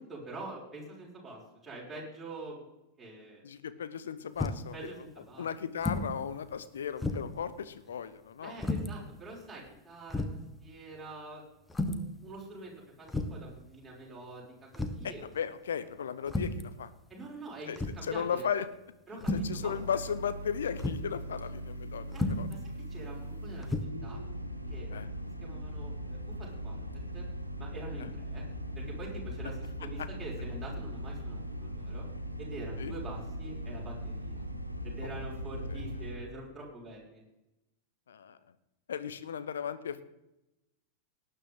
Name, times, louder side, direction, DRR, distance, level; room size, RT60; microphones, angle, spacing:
voice 1, 0.0-2.6 3.0-3.4 4.7-5.5 8.4-11.4 11.8-15.2 17.1-18.5 19.1-19.7 22.1-22.6 22.9-23.8 24.0-24.2 24.7-25.0 25.4-26.8 27.1-27.3 27.6-28.4 28.7-32.1 32.4-34.5 34.8-37.2, right 2 dB, 10° right, -5 dB, 6.1 m, -45 dB
voice 2, 3.4-4.9 5.4-8.6 15.0-16.9 17.7-18.7 19.3-22.5 24.9-25.1 28.0-28.1 32.8-32.9 35.7-35.8 38.1-38.4 38.9-40.0, left 7 dB, 65° left, 13 dB, 1.0 m, -36 dB
sound 1, 4.4-4.7 5.8-6.1 6.5-6.6 7.0-7.4 8.6-8.9 9.7-9.8 10.1-10.4 11.7-12.1 13.1-13.5 14.7-15.1 16.3-16.7 17.8-18.1 19.2-19.6 20.8-21.1 22.1-22.5 23.6-23.8, left 2 dB, 10° left, 1.3 m, -32 dB
sound 2, 19.2-36.1, equal, 90° right, 1.3 m, -40 dB
19.0 x 9.7 x 4.0 m, 0.92 s
figure-of-eight pair, 90°, 0 cm